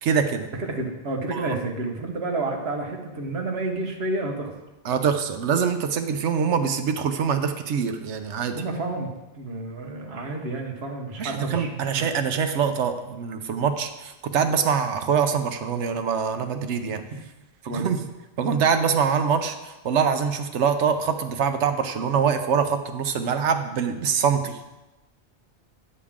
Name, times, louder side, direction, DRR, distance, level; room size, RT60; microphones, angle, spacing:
voice 1, 0.0-0.5 1.3-1.6 4.8-8.6 11.2-17.0 17.6-18.0 18.4-24.6, right 6 dB, 80° right, 8 dB, 1.0 m, -24 dB
voice 2, 0.6-4.5 8.5-9.1 9.3-12.1 17.7-18.0, right 2 dB, 65° right, 2 dB, 1.4 m, -30 dB
10.0 x 6.7 x 3.6 m, 1.0 s
omnidirectional pair, 1.2 m